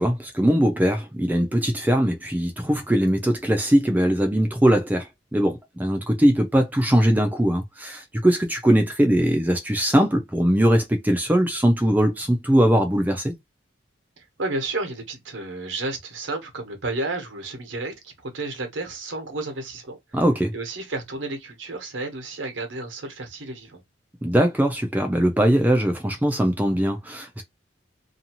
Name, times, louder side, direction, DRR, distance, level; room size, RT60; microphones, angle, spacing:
voice 1, 0.0-13.3 20.1-20.5 24.2-27.4, equal, 10° right, 0.4 m, -21 dB
voice 2, 14.2-20.2 20.5-23.8, right 2 dB, 85° right, 1.0 m, -32 dB
2.7 x 2.3 x 2.9 m
head